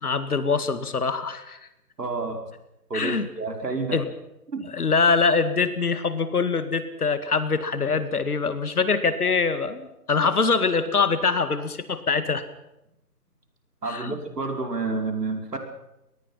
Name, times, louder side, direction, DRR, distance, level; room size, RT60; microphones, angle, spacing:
voice 1, 0.0-1.6 2.9-3.3 3.9-4.1 4.7-12.4 13.9-14.1, left 4 dB, 65° left, 11 dB, 2.2 m, -24 dB
voice 2, 2.0-2.4 2.9-4.0 4.5-4.7 13.8-15.6, right 3 dB, 75° right, 4 dB, 5.1 m, -29 dB
24.0 x 19.5 x 5.8 m, 0.87 s
figure-of-eight pair, 160°, 48 cm